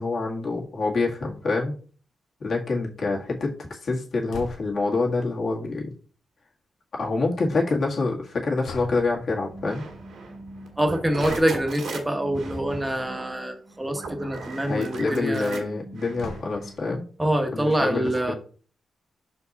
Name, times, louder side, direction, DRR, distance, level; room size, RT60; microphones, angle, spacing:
voice 1, 0.0-1.8 2.4-5.9 7.0-9.8 14.6-17.0 17.5-18.3, left 3 dB, 50° left, -1 dB, 1.9 m, -26 dB
sound 1, 4.3-4.9 8.6-9.2 11.2-11.6 12.9-13.1 13.5-13.6 13.8-13.9 16.2-16.8, left 3 dB, 85° left, 1.3 m, -38 dB
sound 2, 9.5-16.8, right 3 dB, 80° right, 2.0 m, -38 dB
voice 2, 10.8-15.6 17.2-18.3, right 1 dB, 10° right, 5 dB, 1.1 m, -25 dB
6.3 x 4.5 x 4.1 m, 0.41 s
wide cardioid pair, 140°, 0 cm